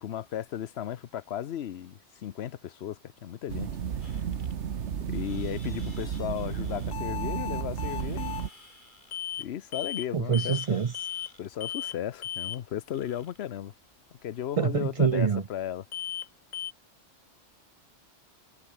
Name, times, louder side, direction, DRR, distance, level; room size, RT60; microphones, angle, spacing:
voice 1, 0.0-3.7 4.1-4.2 5.1-8.3 9.4-10.8 11.4-13.7 14.2-15.8, left 10 dB, 60° left, 0.9 m, -35 dB
sound 1, 3.5-8.5, right 8 dB, 65° right, 1.3 m, -33 dB
sound 2, 4.0-15.8, left 2 dB, 40° left, 3.5 m, -57 dB
sound 3, 6.9-8.5 9.1-9.5 9.7-10.1 10.3-10.7 10.9-11.3 11.6-12.0 12.2-12.6 15.9-16.3 16.5-16.7, left 9 dB, 75° left, 1.3 m, -36 dB
voice 2, 10.1-10.9 14.6-15.4, right 6 dB, 40° right, 0.5 m, -25 dB
omnidirectional pair, 1.3 m